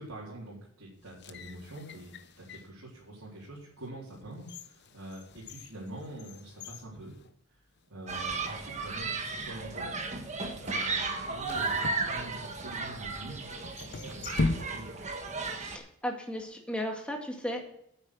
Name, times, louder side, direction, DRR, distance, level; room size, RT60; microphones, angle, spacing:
voice 1, 0.0-7.1 7.9-9.1 9.4-10.0 10.6-15.1, right 1 dB, 85° right, -6 dB, 4.0 m, -45 dB
sound 1, 1.0-2.8 3.4-3.5 4.1-7.8 8.1-8.2 9.0-9.4 11.4-12.8 13.6-15.2 15.4-15.5, left 2 dB, 50° left, 0.8 m, -38 dB
Human group actions, 8.1-15.8, right 3 dB, 35° right, 1.4 m, -34 dB
voice 2, 15.5-17.6, equal, 5° left, 1 dB, 2.1 m, -35 dB
9.7 x 9.0 x 6.3 m, 0.74 s
head